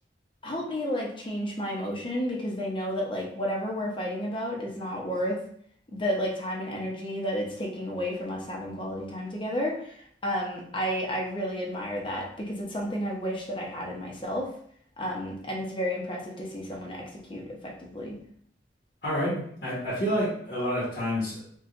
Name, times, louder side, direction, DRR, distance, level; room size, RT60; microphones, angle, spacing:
voice 1, 0.4-5.4 5.9-14.5 15.0-18.2, equal, 30° left, -1 dB, 0.8 m, -32 dB
voice 2, 19.0-21.4, equal, 70° left, -8 dB, 1.2 m, -28 dB
4.5 x 2.4 x 2.5 m, 0.64 s
head